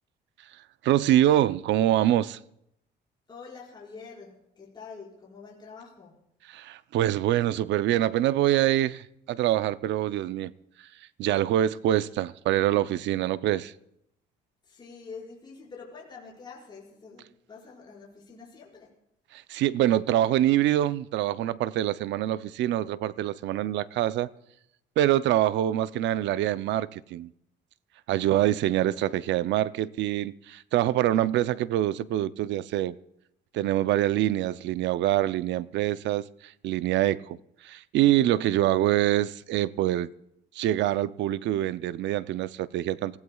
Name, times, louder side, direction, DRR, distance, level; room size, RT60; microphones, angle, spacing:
voice 1, 0.8-2.4 6.5-10.5 11.2-13.7 19.3-24.3 25.0-27.3 28.1-33.0 33.5-37.4 37.6-40.1 40.5-43.2, right 13 dB, 70° right, 0.5 m, -25 dB
voice 2, 3.3-6.3 14.6-19.0, left 5 dB, 25° left, 5.3 m, -46 dB
27.5 x 16.0 x 2.3 m
cardioid pair, 140°, 19 cm